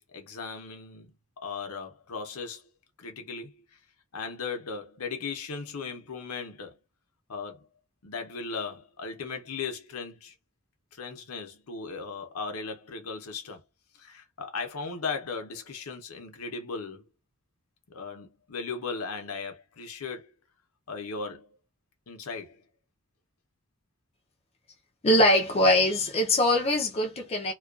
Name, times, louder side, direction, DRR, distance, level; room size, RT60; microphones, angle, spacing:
voice 1, 0.0-2.7 3.0-3.8 4.1-6.8 7.3-7.7 8.0-10.3 10.9-13.6 13.9-17.1 17.9-20.3 20.9-21.6 22.1-22.6, left 4 dB, 75° left, 0.7 m, -37 dB
voice 2, 25.0-27.5, left 1 dB, 30° left, 0.4 m, -22 dB
2.4 x 2.2 x 2.3 m
head